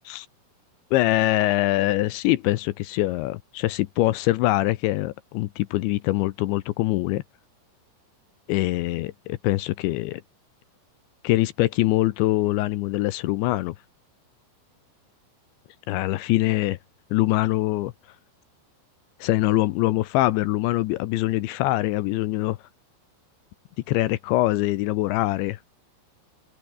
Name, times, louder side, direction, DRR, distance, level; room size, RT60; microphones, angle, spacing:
voice 1, 0.9-7.2 8.5-10.2 11.2-13.8 15.9-16.8 17.1-17.9 19.2-22.6 23.9-25.6, left 17 dB, 80° left, 2.8 m, -23 dB
omnidirectional pair, 5.8 m